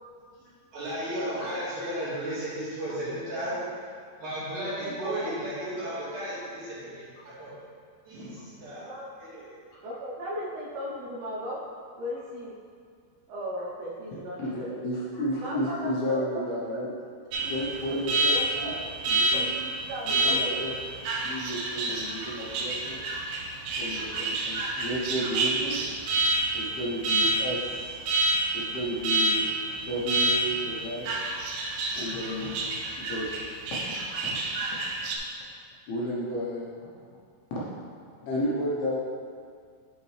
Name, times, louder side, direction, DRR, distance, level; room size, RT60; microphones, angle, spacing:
voice 1, 0.7-3.8 4.2-7.5 8.0-8.9 9.2-9.6, right 1 dB, 55° right, -11 dB, 2.8 m, -34 dB
voice 2, 4.8-5.3 8.9-9.1 9.8-11.6 12.0-12.5 13.3-14.7 15.4-15.8 16.1-16.8 17.9-18.8 19.2-20.7, equal, 75° right, -7 dB, 2.6 m, -37 dB
voice 3, 14.4-16.9 17.4-18.8 19.1-19.5 20.0-20.7 21.2-23.0 23.8-25.8 26.5-28.0 28.5-31.1 31.9-32.6 33.0-33.4 33.7-33.8 35.9-36.9 38.2-39.0, equal, 75° left, -7 dB, 2.6 m, -32 dB
Alarm, 17.3-35.2, right 2 dB, 90° right, 3.1 m, -29 dB
8.4 x 5.0 x 3.2 m, 2.1 s
omnidirectional pair, 5.1 m